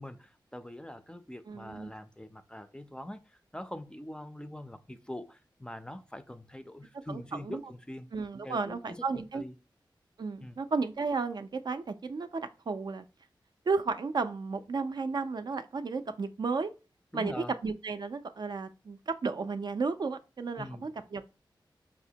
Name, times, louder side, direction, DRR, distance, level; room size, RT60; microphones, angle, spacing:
voice 1, 0.0-8.1 8.4-9.5 10.4-10.6 17.1-17.5 20.6-20.9, left 1 dB, 10° left, 0.4 m, -43 dB
voice 2, 1.5-1.9 7.1-7.6 8.1-9.4 10.2-13.0 13.7-16.7 17.1-21.3, right 4 dB, 60° right, 0.3 m, -33 dB
4.8 x 2.1 x 2.7 m
wide cardioid pair, 60°, 8 cm